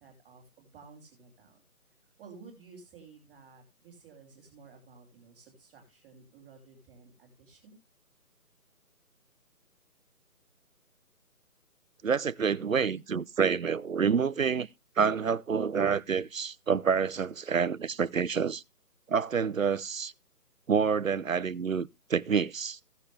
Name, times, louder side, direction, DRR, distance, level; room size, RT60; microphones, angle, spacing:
voice 1, 0.0-1.6 2.2-7.8, right 4 dB, ahead, 1.5 m, -54 dB
voice 2, 12.0-14.7 15.0-18.6 19.1-20.1 20.7-22.8, right 6 dB, 60° right, 0.7 m, -28 dB
16.0 x 7.0 x 3.4 m
hypercardioid pair, 180°, 47 cm